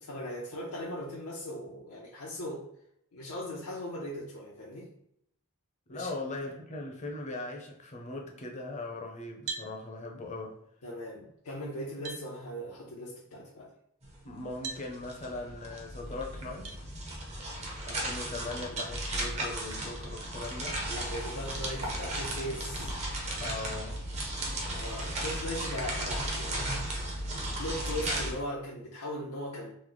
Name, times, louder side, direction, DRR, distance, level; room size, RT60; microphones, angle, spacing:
voice 1, 0.0-2.7 3.1-4.9 5.9-6.1 10.8-13.7 18.4-18.8 20.9-22.9 24.4-26.7 27.3-29.7, left 1 dB, 80° left, -4 dB, 0.6 m, -39 dB
voice 2, 5.9-10.6 14.2-16.7 17.9-20.8 23.4-24.0, left 2 dB, 30° left, 1 dB, 0.6 m, -39 dB
sound 1, 9.5-9.7 11.4-11.5 12.0-12.3 14.6-14.9 16.6-16.8 18.8-19.0 20.9-21.0 21.7-21.8 23.4-23.6, right 5 dB, 80° right, 0.5 m, -39 dB
sound 2, 14.0-14.1 14.4-28.3, right 1 dB, 30° right, 0.6 m, -35 dB
3.0 x 2.0 x 3.8 m, 0.74 s
head